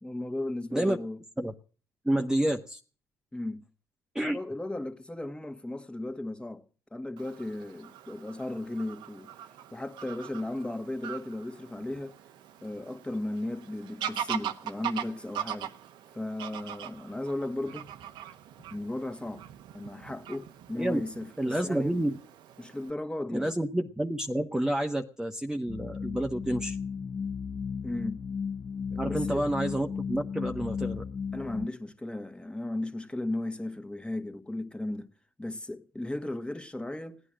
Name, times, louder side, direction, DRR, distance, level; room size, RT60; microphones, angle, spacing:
voice 1, 0.0-1.2 3.3-3.6 4.2-6.6 6.9-9.3 9.7-12.2 12.6-15.7 16.1-17.9 18.7-19.4 19.7-22.0 22.6-23.5 27.8-28.2 28.9-29.4 31.3-35.1 35.4-37.2, left 1 dB, 10° left, 1.8 m, -35 dB
voice 2, 2.0-2.8 4.1-4.4 20.7-21.0 21.4-22.2 23.3-26.8 28.9-31.0, right 1 dB, 10° right, 1.3 m, -29 dB
Fowl / Bird vocalization bird call bird song, 7.2-22.9, right 10 dB, 75° right, 1.1 m, -41 dB
sound 1, 25.7-31.7, left 6 dB, 40° left, 0.8 m, -35 dB
17.0 x 9.8 x 7.6 m
supercardioid pair, 65°, 8 cm